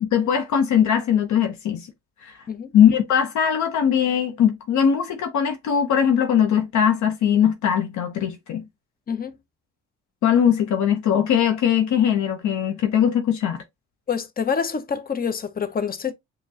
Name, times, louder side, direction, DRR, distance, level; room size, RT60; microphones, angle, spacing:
voice 1, 0.0-1.9 2.2-2.4 2.7-8.6 10.2-13.6, left 8 dB, 70° left, 0.7 m, -20 dB
voice 2, 9.1-9.4 14.1-16.1, left 6 dB, 30° left, 0.6 m, -26 dB
5.1 x 2.2 x 2.7 m
cardioid pair, 90°, 30 cm